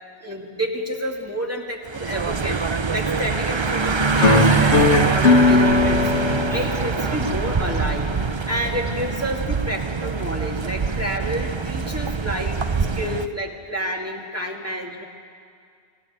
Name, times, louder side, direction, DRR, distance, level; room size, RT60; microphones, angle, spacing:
voice 1, 0.2-6.1 6.5-8.1 8.5-12.6 13.0-15.0, equal, 15° right, 0 dB, 2.3 m, -29 dB
sound 1, 1.9-13.3, right 5 dB, 30° right, 0.6 m, -24 dB
sound 2, 4.2-9.2, left 3 dB, 80° left, 1.6 m, -20 dB
25.5 x 15.5 x 9.4 m, 2.2 s
omnidirectional pair, 1.1 m